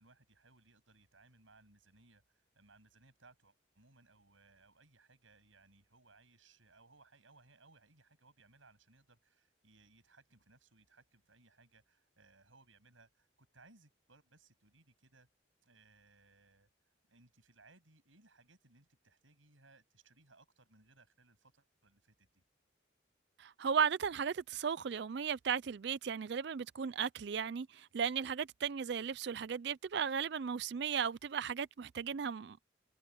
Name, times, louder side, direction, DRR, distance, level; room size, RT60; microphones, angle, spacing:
voice 1, 0.0-15.3 15.6-16.7 17.1-22.4, right 3 dB, 85° right, 8.0 m, -65 dB
voice 2, 23.4-32.6, right 7 dB, 60° right, 0.4 m, -36 dB
head